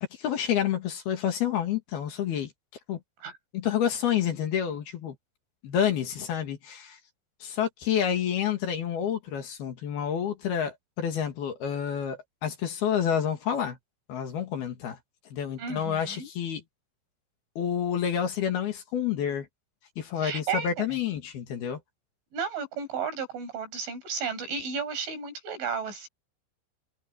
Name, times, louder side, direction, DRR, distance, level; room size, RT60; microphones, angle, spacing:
voice 1, 0.2-2.5 2.9-3.0 3.5-5.2 5.6-7.0 7.4-13.8 14.1-15.0 15.3-16.6 17.6-19.5 20.0-21.8, left 9 dB, 60° left, 3.8 m, -29 dB
voice 2, 15.6-16.3 20.2-20.8 22.3-26.1, right 6 dB, 80° right, 10.0 m, -33 dB
omnidirectional pair, 5.4 m